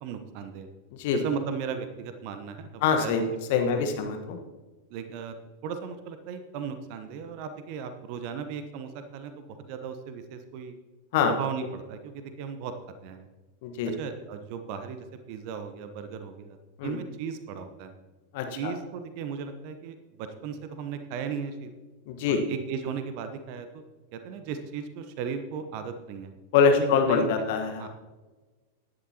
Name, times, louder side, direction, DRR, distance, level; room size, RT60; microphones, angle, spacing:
voice 1, 0.0-0.7 1.1-3.2 3.7-3.9 4.9-5.3 5.6-10.8 11.2-12.7 13.0-13.3 13.9-16.6 16.8-17.9 18.5-21.7 22.3-23.8 24.1-26.3 26.7-27.3 27.8-27.9, right 6 dB, 45° right, 8 dB, 1.0 m, -36 dB
voice 2, 2.8-3.2 3.5-4.4 11.1-11.3 13.6-14.0 16.8-17.0 18.3-18.7 22.1-22.4 26.5-27.9, left 6 dB, 50° left, 5 dB, 1.3 m, -24 dB
16.0 x 11.0 x 2.9 m, 1.2 s
figure-of-eight pair, 90°, 0 cm